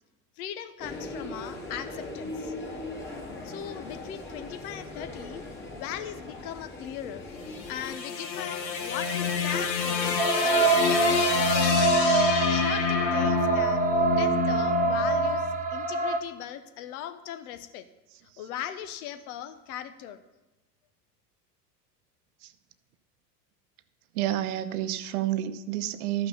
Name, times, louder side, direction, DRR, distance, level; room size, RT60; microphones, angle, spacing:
voice 1, 0.4-2.5 3.4-5.4 5.7-7.3 7.7-10.2 10.4-12.1 12.5-13.9 14.2-17.9 18.4-20.2, left 10 dB, 60° left, 11 dB, 1.0 m, -39 dB
sound 1, 0.8-7.9, left 2 dB, 20° left, 2.4 m, -39 dB
sound 2, 7.3-15.6, left 6 dB, 85° left, 1.2 m, -28 dB
sound 3, 10.2-16.2, right 4 dB, 15° right, 0.9 m, -25 dB
voice 2, 24.1-26.3, right 12 dB, 60° right, 13 dB, 0.8 m, -29 dB
13.0 x 5.9 x 5.5 m, 1.0 s
figure-of-eight pair, 80°, 50 cm